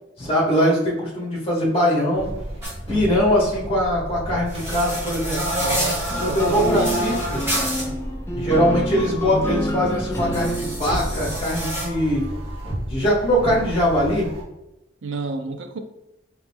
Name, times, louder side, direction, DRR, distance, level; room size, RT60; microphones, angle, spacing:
voice 1, 0.2-2.3 2.9-5.4 6.2-7.4 8.3-12.2 12.9-14.3, equal, 30° left, 1.4 m, -21 dB
sound 1, 2.1-14.4, equal, 30° right, 1.0 m, -33 dB
sound 2, 2.6-2.7 4.5-7.8 10.1-11.9, equal, 10° right, 1.4 m, -27 dB
voice 2, 5.6-7.0 15.0-15.8, right 3 dB, 75° right, 0.5 m, -30 dB
sound 3, 6.1-11.5, right 1 dB, 15° left, 0.5 m, -28 dB
4.0 x 3.2 x 3.4 m
head